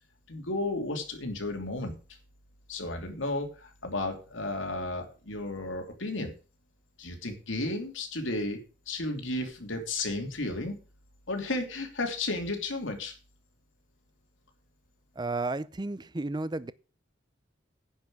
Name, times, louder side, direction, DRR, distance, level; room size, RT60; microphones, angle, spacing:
voice 1, 0.3-1.9 2.7-6.3 7.0-8.6 8.9-10.8 11.3-13.1, left 2 dB, 80° left, 2.9 m, -33 dB
voice 2, 15.2-16.7, right 2 dB, 20° right, 0.5 m, -32 dB
10.0 x 5.8 x 7.8 m
head